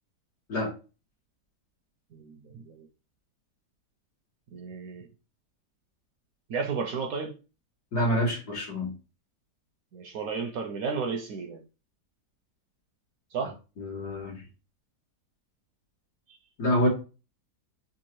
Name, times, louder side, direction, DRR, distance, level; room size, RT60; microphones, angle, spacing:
voice 1, 2.1-2.9 4.5-5.1 6.5-7.4 9.9-11.6 13.3-13.6 16.3-16.4, right 5 dB, 70° right, 5 dB, 0.9 m, -33 dB
voice 2, 7.9-8.9 13.8-14.4 16.6-16.9, equal, 70° left, -4 dB, 2.5 m, -27 dB
4.6 x 2.6 x 3.0 m, 0.32 s
omnidirectional pair, 1.8 m